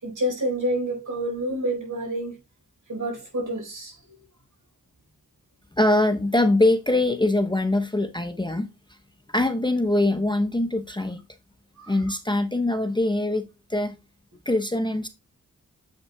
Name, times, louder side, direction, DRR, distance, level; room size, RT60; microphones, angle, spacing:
voice 1, 0.0-2.4 2.9-4.0 11.8-11.9, right 1 dB, 60° right, 4.3 m, -28 dB
voice 2, 5.8-8.7 9.3-11.2 11.9-13.9 14.5-15.1, left 1 dB, 15° left, 0.8 m, -23 dB
7.8 x 5.7 x 2.3 m
cardioid pair, 40°, 34 cm